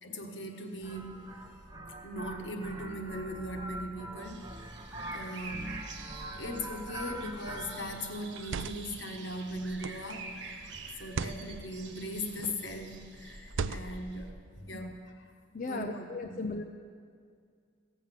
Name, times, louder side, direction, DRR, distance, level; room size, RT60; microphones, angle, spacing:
voice 1, 0.0-1.5 2.0-4.9 5.1-5.7 6.3-10.3 11.0-15.1 15.6-16.5, equal, 70° left, 3 dB, 1.4 m, -39 dB
sound 1, 0.8-8.1, right 1 dB, 20° right, 0.7 m, -43 dB
sound 2, 4.2-14.3, right 3 dB, 65° right, 1.2 m, -47 dB
sound 3, 7.1-7.4 8.3-9.0 9.8-10.2 11.0-11.4 12.3-12.7 13.5-14.1, right 5 dB, 80° right, 0.5 m, -37 dB
voice 2, 15.5-16.6, left 3 dB, 40° left, 4 dB, 0.5 m, -36 dB
16.5 x 7.3 x 7.5 m, 2.2 s
head